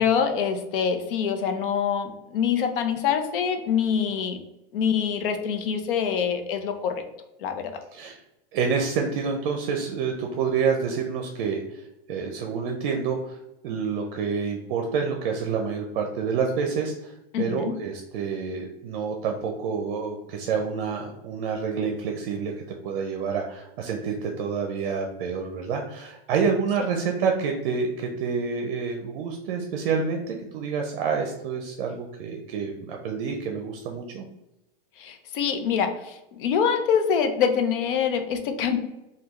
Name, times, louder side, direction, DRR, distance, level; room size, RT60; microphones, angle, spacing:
voice 1, 0.0-4.4 4.7-6.9 7.4-7.7 17.3-17.7 35.0-38.8, left 7 dB, 65° left, 7 dB, 0.7 m, -25 dB
voice 2, 7.9-8.2 8.5-34.2, right 5 dB, 60° right, 2 dB, 0.6 m, -28 dB
3.5 x 2.3 x 3.0 m, 0.95 s
supercardioid pair, 135°, 29 cm